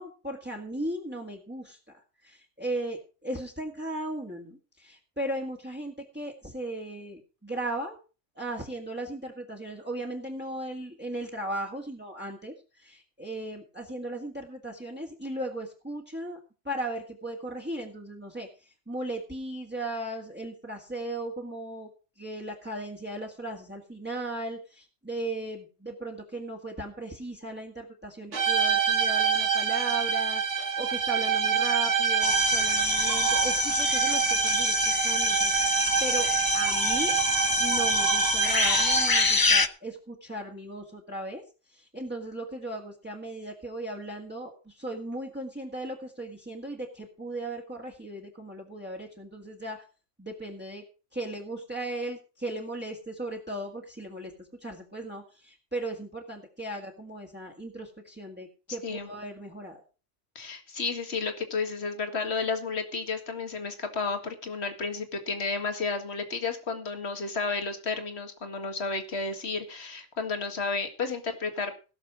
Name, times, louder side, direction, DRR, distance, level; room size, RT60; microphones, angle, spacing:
voice 1, 0.0-1.8 2.2-8.0 8.4-16.4 16.6-21.9 22.2-35.7 36.0-37.1 37.6-41.4 41.7-49.8 50.2-50.8 51.1-59.8, right 1 dB, 10° right, -1 dB, 1.9 m, -37 dB
sound 1, 28.3-39.4, right 6 dB, 90° right, 2.0 m, -26 dB
sound 2, 32.2-39.7, left 3 dB, 25° left, 0.5 m, -27 dB
voice 2, 60.4-71.7, left 4 dB, 65° left, 7 dB, 2.2 m, -32 dB
17.0 x 6.7 x 6.1 m, 0.34 s
omnidirectional pair, 1.2 m